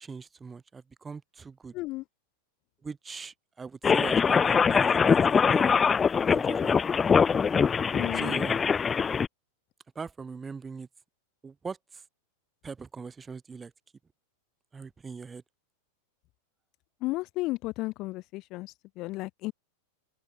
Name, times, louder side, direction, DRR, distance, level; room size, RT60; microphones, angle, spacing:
voice 1, 0.0-1.7 2.8-5.2 5.5-5.7 6.3-6.8 8.1-8.6 9.9-10.9 11.4-12.0 12.6-13.7 14.7-15.4, right 5 dB, 15° right, 3.2 m, -40 dB
voice 2, 1.7-2.0 7.9-8.4 17.0-19.5, left 20 dB, 40° left, 1.5 m, -34 dB
sound 1, 3.8-9.3, left 6 dB, 20° left, 0.7 m, -23 dB
open air
figure-of-eight pair, 90°, 0 cm